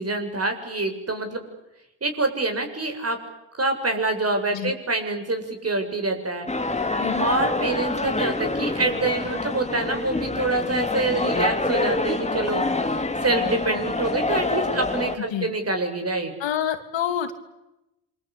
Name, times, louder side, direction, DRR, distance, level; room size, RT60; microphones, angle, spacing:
voice 1, 0.0-1.5 2.0-3.2 3.5-6.5 7.2-16.3, right 2 dB, 30° right, 6 dB, 7.5 m, -26 dB
sound 1, 6.5-15.2, left 2 dB, 15° left, 2.7 m, -26 dB
voice 2, 16.4-17.3, left 9 dB, 65° left, 7 dB, 3.1 m, -27 dB
27.5 x 24.0 x 8.5 m, 0.92 s
supercardioid pair, 70°, 48 cm